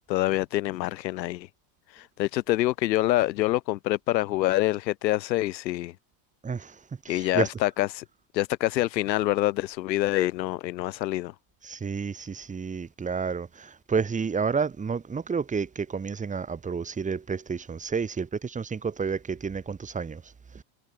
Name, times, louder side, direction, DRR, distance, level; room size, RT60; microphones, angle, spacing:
voice 1, 0.1-1.5 1.9-5.9 7.1-8.0 8.3-11.3, left 16 dB, 85° left, 5.5 m, -26 dB
voice 2, 6.4-7.5 11.6-20.6, right 5 dB, 15° right, 2.2 m, -30 dB
supercardioid pair, 135°, 50 cm